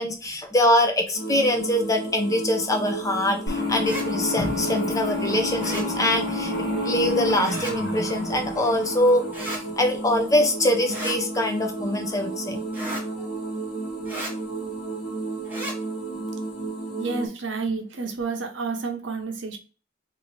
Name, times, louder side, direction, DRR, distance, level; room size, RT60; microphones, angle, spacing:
voice 1, 0.0-6.5 6.8-12.6, left 1 dB, 20° left, 4 dB, 0.6 m, -23 dB
sound 1, 1.1-17.3, right 3 dB, 80° left, 1.3 m, -32 dB
sound 2, 3.5-9.8, left 4 dB, 65° left, 1.1 m, -31 dB
sound 3, 3.8-4.1 5.6-5.9 7.4-7.7 9.3-9.6 10.9-11.2 12.7-13.0 14.1-14.3 15.4-15.8, right 1 dB, 10° right, 0.9 m, -33 dB
voice 2, 17.0-19.6, right 4 dB, 70° right, 4 dB, 0.7 m, -30 dB
2.8 x 2.7 x 3.1 m, 0.35 s
head